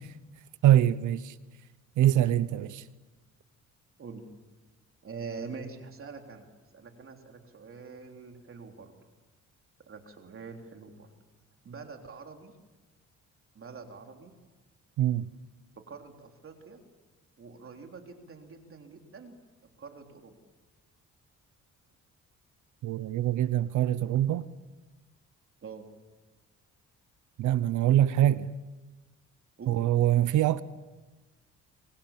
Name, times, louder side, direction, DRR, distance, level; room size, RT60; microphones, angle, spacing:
voice 1, 0.6-1.3 2.0-2.8 15.0-15.3 22.8-24.5 27.4-28.5 29.7-30.6, right 12 dB, 80° right, 0.8 m, -24 dB
voice 2, 5.0-6.5 6.7-8.9 9.9-11.1 11.6-12.5 13.6-14.3 15.9-16.8 17.4-19.4 19.8-20.3 25.6-25.9 29.6-29.9, right 5 dB, 45° right, 3.5 m, -44 dB
27.0 x 25.5 x 7.4 m
cardioid pair, 90°, 30 cm